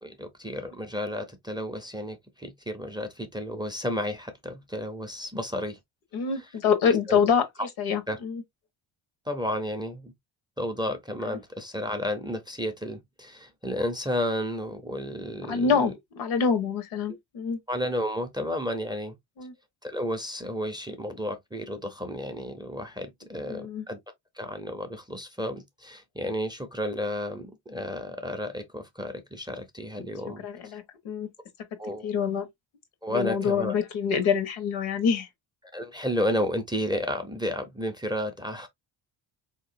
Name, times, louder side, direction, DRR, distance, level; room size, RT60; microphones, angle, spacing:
voice 1, 0.0-5.8 7.1-7.2 8.1-8.2 9.3-10.1 10.6-15.8 17.7-19.2 19.8-24.0 24.4-30.5 31.8-32.2 33.0-33.7 35.7-38.7, equal, 10° right, 0.4 m, -32 dB
voice 2, 6.1-7.5 7.8-8.4 15.5-17.6 19.4-19.5 23.5-23.8 30.4-31.3 32.0-32.5 33.1-35.3, left 6 dB, 85° left, 1.2 m, -26 dB
3.9 x 2.9 x 2.5 m
cardioid pair, 140°, 48 cm